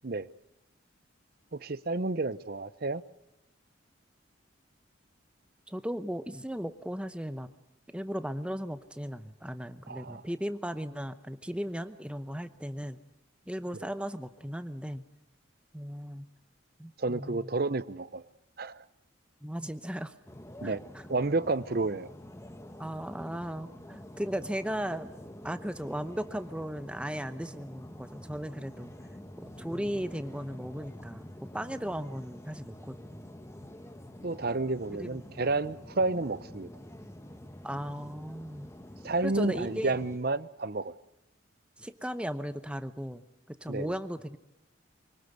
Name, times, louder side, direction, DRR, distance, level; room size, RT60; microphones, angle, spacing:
voice 1, 1.5-3.0 9.9-10.2 17.0-18.2 18.6-18.8 20.6-20.8 21.1-22.1 34.2-36.7 39.0-41.0 43.7-44.0, right 3 dB, 45° right, 0.7 m, -30 dB
voice 2, 5.7-7.5 7.9-13.0 13.5-15.0 15.7-16.3 16.8-17.5 19.4-20.1 20.6-20.7 22.8-25.1 25.4-28.9 29.4-31.3 31.5-33.3 35.0-35.2 37.6-38.7 39.2-40.0 41.8-44.4, equal, 5° right, 0.8 m, -36 dB
sound 1, 20.3-40.2, left 1 dB, 15° left, 1.1 m, -47 dB
24.5 x 18.5 x 8.1 m
head